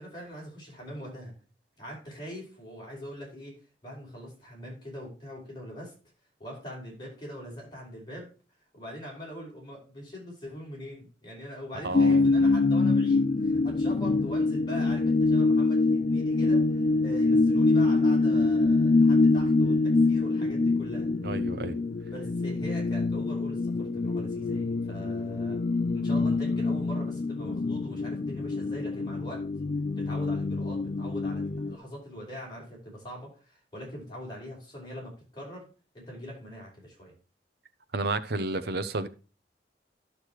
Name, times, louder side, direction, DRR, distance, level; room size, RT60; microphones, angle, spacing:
voice 1, 0.0-1.3 1.8-3.5 3.8-5.9 6.4-8.3 8.7-21.1 22.0-25.6 25.9-29.4 30.0-35.7 35.9-37.1, equal, 25° left, 5.2 m, -42 dB
voice 2, 11.8-12.2 21.2-21.8 37.9-39.1, right 2 dB, 65° right, 0.8 m, -31 dB
sound 1, 11.9-31.7, left 3 dB, 45° left, 0.4 m, -25 dB
12.0 x 6.4 x 3.1 m
head